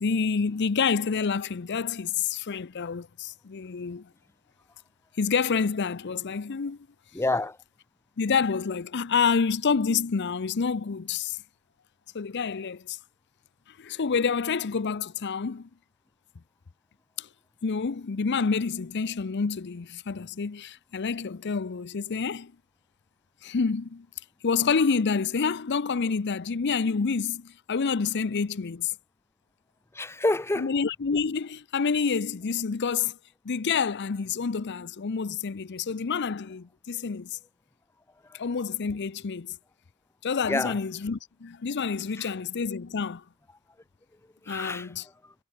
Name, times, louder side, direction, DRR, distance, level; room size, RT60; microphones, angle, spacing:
voice 1, 0.0-4.1 5.2-6.8 8.2-11.4 12.1-13.0 13.8-15.7 17.2-17.3 17.6-22.5 23.4-24.1 24.4-28.9 30.6-33.2 33.4-37.4 38.3-39.6 40.2-43.2 44.5-45.0, left 5 dB, 55° left, 0.6 m, -28 dB
voice 2, 7.1-7.6 29.9-30.7 38.3-38.4 40.5-40.8 42.2-42.3 44.4-44.9 45.2-45.3, left 2 dB, 10° left, 0.6 m, -28 dB
head